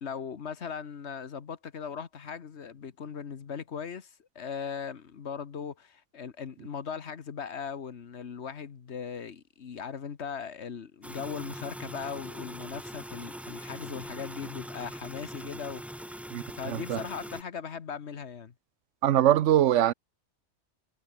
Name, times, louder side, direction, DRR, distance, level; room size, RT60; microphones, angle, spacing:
voice 1, 0.0-16.1 16.5-18.5, left 6 dB, 65° left, 1.5 m, -39 dB
sound 1, 11.0-17.4, equal, ahead, 1.4 m, -42 dB
voice 2, 16.3-17.0 19.0-19.9, right 12 dB, 85° right, 1.0 m, -23 dB
omnidirectional pair, 1.2 m